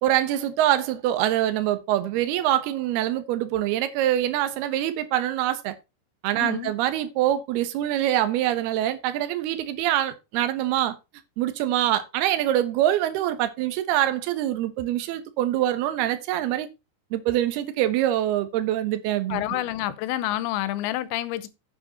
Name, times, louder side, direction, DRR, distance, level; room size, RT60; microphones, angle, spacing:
voice 1, 0.0-5.7 6.2-11.0 11.4-16.7 17.1-19.4, right 12 dB, 70° right, 2.9 m, -24 dB
voice 2, 6.4-6.7 19.3-21.5, left 14 dB, 90° left, 3.2 m, -28 dB
9.4 x 7.9 x 4.1 m
omnidirectional pair, 5.0 m